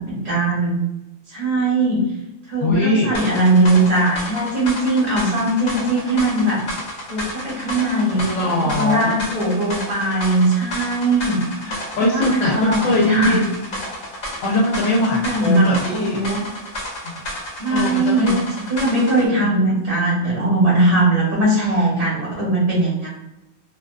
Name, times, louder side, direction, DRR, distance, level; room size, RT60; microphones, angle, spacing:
voice 1, 0.1-0.7 1.3-2.0 2.5-6.6 7.1-11.4 12.0-13.4 14.8-16.4 17.6-23.1, right 2 dB, 40° right, -6 dB, 0.7 m, -20 dB
voice 2, 2.6-3.1 7.3-7.5 8.2-9.2 11.6-13.7 14.4-16.2 17.7-18.4, left 1 dB, 75° left, -1 dB, 0.9 m, -21 dB
sound 1, 3.1-19.3, equal, 45° left, 0.9 m, -31 dB
2.4 x 2.3 x 2.3 m, 0.89 s
omnidirectional pair, 1.3 m